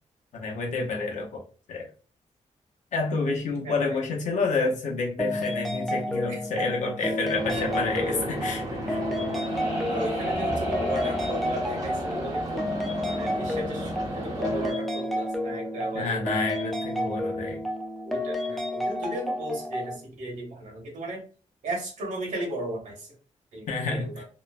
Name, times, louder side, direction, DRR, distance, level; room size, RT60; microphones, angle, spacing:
voice 1, 0.3-1.4 1.7-1.9 2.9-9.0 15.9-17.6 23.7-24.2, left 3 dB, 80° left, 0 dB, 0.6 m, -29 dB
voice 2, 3.6-4.0 6.3-6.8 7.5-8.5 9.9-12.7 13.1-16.4 17.1-17.2 18.0-21.2 21.6-23.1 23.5-24.2, right 1 dB, 90° right, 0 dB, 1.1 m, -35 dB
sound 1, 5.2-20.0, left 1 dB, ahead, 0.4 m, -31 dB
sound 2, 7.4-14.7, right 1 dB, 30° right, 0.8 m, -34 dB
sound 3, 9.4-13.5, equal, 50° left, 0.9 m, -34 dB
2.9 x 2.0 x 2.3 m, 0.38 s
wide cardioid pair, 155°, 12 cm